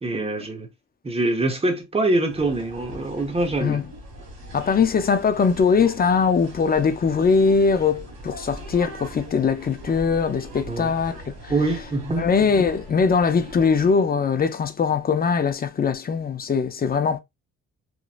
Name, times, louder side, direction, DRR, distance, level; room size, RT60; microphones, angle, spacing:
voice 1, 0.0-0.7 1.0-3.8 10.7-10.9 11.5-12.3, right 2 dB, 20° right, 0.9 m, -24 dB
sound 1, 2.3-14.0, right 1 dB, 65° right, 1.7 m, -41 dB
voice 2, 4.5-11.5 12.2-17.2, left 5 dB, 30° left, 0.5 m, -21 dB
3.0 x 2.6 x 2.4 m
cardioid pair, 90°, 30 cm